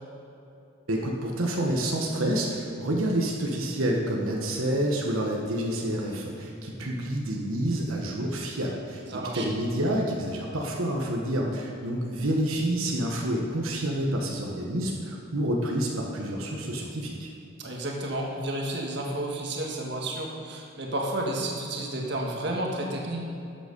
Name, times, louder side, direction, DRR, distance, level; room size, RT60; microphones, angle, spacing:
voice 1, 0.9-9.0 9.3-17.3, right 1 dB, 90° right, -1 dB, 1.3 m, -28 dB
voice 2, 9.1-9.4 17.6-23.3, right 1 dB, 55° right, -1 dB, 1.6 m, -31 dB
12.5 x 8.0 x 5.3 m, 2.7 s
head